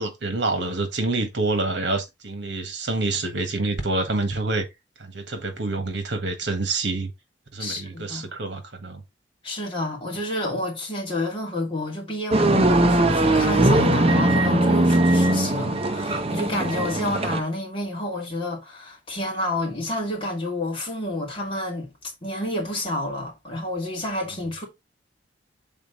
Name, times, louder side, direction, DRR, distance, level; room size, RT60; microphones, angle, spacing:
voice 1, 0.0-4.7 5.0-7.1 7.5-9.0, right 2 dB, 65° right, 1.5 m, -27 dB
voice 2, 7.6-8.2 9.4-24.7, left 1 dB, 30° left, 2.6 m, -29 dB
sound 1, 12.3-17.4, right 1 dB, 35° right, 0.7 m, -20 dB
6.5 x 4.1 x 3.9 m
head